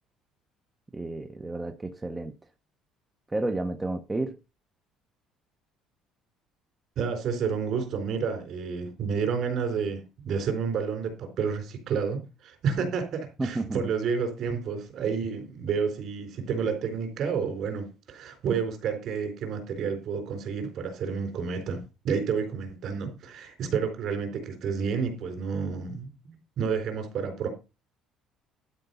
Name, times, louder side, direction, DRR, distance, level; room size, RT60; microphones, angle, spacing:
voice 1, 0.9-2.3 3.3-4.4 13.4-13.9, right 2 dB, 10° right, 0.7 m, -31 dB
voice 2, 7.0-27.5, right 6 dB, 45° right, 4.0 m, -30 dB
12.0 x 5.0 x 6.8 m
cardioid pair, 170°, 0 cm